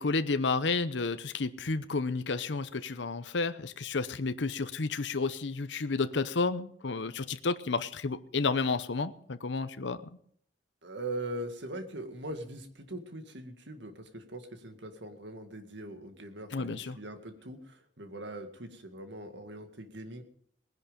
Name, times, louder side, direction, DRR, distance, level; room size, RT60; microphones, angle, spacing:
voice 1, 0.0-10.2 16.5-17.0, left 4 dB, 70° left, 11 dB, 0.8 m, -31 dB
voice 2, 10.8-20.2, right 1 dB, 70° right, 7 dB, 2.0 m, -41 dB
19.5 x 10.5 x 5.2 m, 0.64 s
head